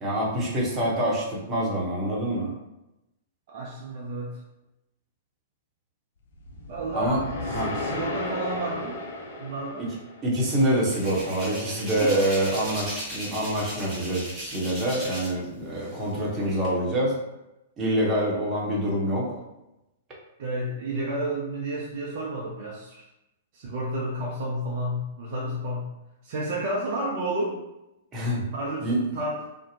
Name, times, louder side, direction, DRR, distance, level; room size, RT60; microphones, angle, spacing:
voice 1, 0.0-2.5 6.9-7.2 7.5-7.7 10.2-17.2 17.8-19.4 28.1-28.4 28.8-29.0, right 1 dB, 25° right, -4 dB, 0.8 m, -26 dB
voice 2, 3.5-4.4 6.7-9.0 9.4-9.9 20.4-23.1 23.5-25.9 26.2-27.6 28.5-29.4, right 1 dB, 50° right, -4 dB, 0.5 m, -31 dB
sound 1, 6.3-10.7, left 2 dB, 60° left, 0.4 m, -35 dB
Hands, 10.4-15.4 15.8-16.7, equal, ahead, 1.2 m, -36 dB
2.6 x 2.1 x 2.7 m, 0.92 s
figure-of-eight pair, 105°, 0 cm